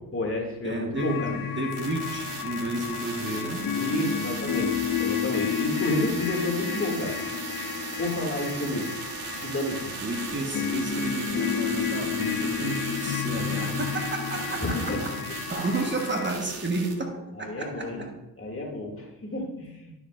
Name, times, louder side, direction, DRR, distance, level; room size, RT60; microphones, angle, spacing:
voice 1, 0.1-1.3 3.7-7.2 8.0-8.9 9.3-9.9 10.6-10.7 14.6-15.0 17.4-18.0 18.4-19.9, left 1 dB, 30° left, 0 dB, 2.5 m, -30 dB
voice 2, 0.6-3.8 10.0-15.2 15.5-18.1, right 2 dB, 25° right, 2 dB, 1.5 m, -32 dB
sound 1, 1.0-16.3, left 8 dB, 50° left, 1.3 m, -31 dB
sound 2, 1.7-16.9, right 6 dB, 80° right, 1.3 m, -38 dB
12.0 x 6.9 x 2.6 m, 0.94 s
hypercardioid pair, 45°, 44 cm